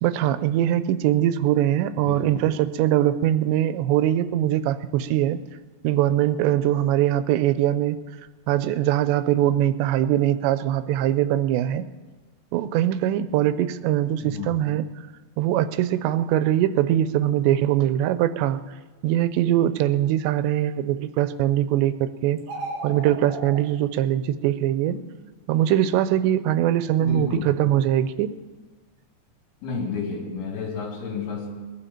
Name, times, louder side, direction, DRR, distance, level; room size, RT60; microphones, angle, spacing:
voice 1, 0.0-5.4 5.8-8.0 8.5-11.9 12.5-14.9 15.4-18.6 19.0-22.4 22.8-25.0 25.5-28.3, right 12 dB, 90° right, 12 dB, 2.9 m, -22 dB
voice 2, 2.0-2.4 14.2-14.6 24.9-25.0 27.0-27.5 29.6-31.5, left 5 dB, 65° left, -1 dB, 4.9 m, -31 dB
sound 1, 22.4-23.6, right 1 dB, 55° right, 4.4 m, -34 dB
21.5 x 12.5 x 4.4 m, 1.3 s
omnidirectional pair, 5.0 m